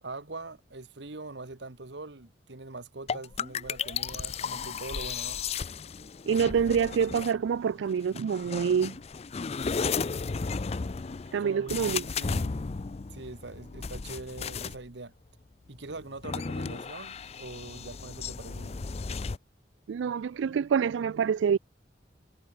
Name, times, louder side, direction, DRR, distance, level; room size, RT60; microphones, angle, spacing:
voice 1, 0.0-5.4 11.4-12.6 13.1-15.1 15.7-18.8, right 2 dB, 70° right, 1.4 m, -43 dB
sound 1, 3.1-7.6 8.2-14.9 15.8-19.4, left 5 dB, 35° left, 0.4 m, -34 dB
voice 2, 6.3-8.9 11.3-12.0 19.9-21.6, right 7 dB, 85° right, 0.3 m, -26 dB
head